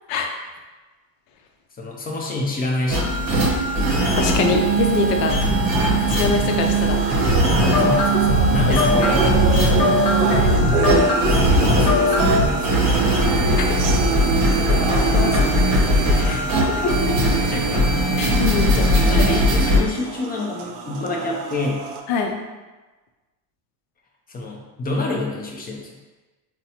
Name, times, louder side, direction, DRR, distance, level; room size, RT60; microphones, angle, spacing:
voice 1, 1.8-3.5 7.7-9.9 11.2-12.9 16.1-17.2 17.4-18.1 18.7-21.8 24.3-26.0, left 2 dB, 20° left, -1 dB, 0.5 m, -28 dB
sound 1, 2.9-19.8, right 1 dB, 35° right, 0.9 m, -20 dB
voice 2, 4.2-5.4 6.1-7.0 10.3-10.5 13.6-13.8 14.7-15.5 16.8-17.0 18.2-19.2 22.1-22.3, left 5 dB, 65° left, 3 dB, 0.7 m, -24 dB
sound 2, 6.0-22.0, right 5 dB, 80° right, 0.6 m, -28 dB
sound 3, 7.3-12.5, left 1 dB, 90° left, 0.9 m, -20 dB
4.1 x 2.2 x 2.7 m, 1.2 s
supercardioid pair, 100°, 49 cm